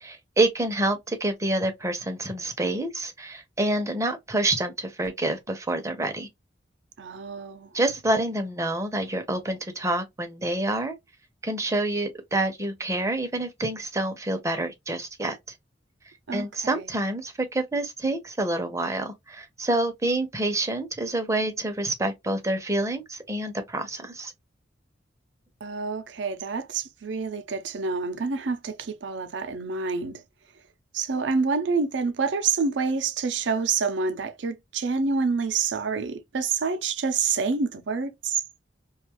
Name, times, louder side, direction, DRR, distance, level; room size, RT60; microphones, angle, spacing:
voice 1, 0.0-6.3 7.7-10.9 11.4-15.4 16.3-24.3, right 1 dB, 15° right, 0.6 m, -27 dB
voice 2, 7.0-7.7 16.3-16.8 25.6-30.2 30.9-38.4, right 5 dB, 75° right, 0.5 m, -27 dB
2.5 x 2.3 x 2.9 m
head